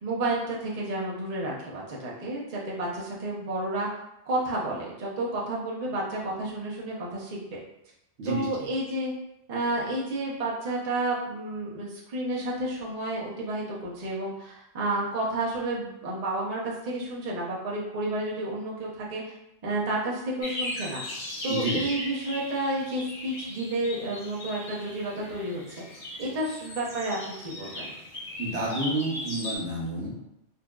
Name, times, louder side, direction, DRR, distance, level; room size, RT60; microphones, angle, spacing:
voice 1, 0.0-3.9 4.3-7.6 8.2-9.1 9.5-19.3 19.6-21.0 21.4-25.8 26.2-28.0, right 1 dB, 40° right, -5 dB, 0.7 m, -31 dB
voice 2, 8.2-8.7 21.5-21.8 28.4-30.2, right 2 dB, 70° right, -4 dB, 1.2 m, -30 dB
sound 1, 20.4-29.6, left 1 dB, 40° left, 0.8 m, -38 dB
3.9 x 2.7 x 2.3 m, 0.85 s
omnidirectional pair, 1.2 m